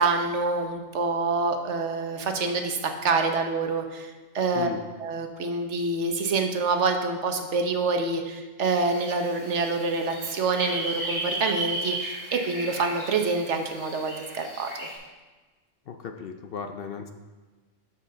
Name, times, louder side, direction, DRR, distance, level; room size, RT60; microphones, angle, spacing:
voice 1, 0.0-4.7 5.0-14.9, right 3 dB, 70° right, 5 dB, 1.2 m, -26 dB
sound 1, 8.6-14.9, right 1 dB, 25° left, 3.4 m, -35 dB
voice 2, 15.9-17.1, left 6 dB, 60° left, 6 dB, 0.7 m, -35 dB
12.0 x 5.6 x 3.8 m, 1.3 s
omnidirectional pair, 1.3 m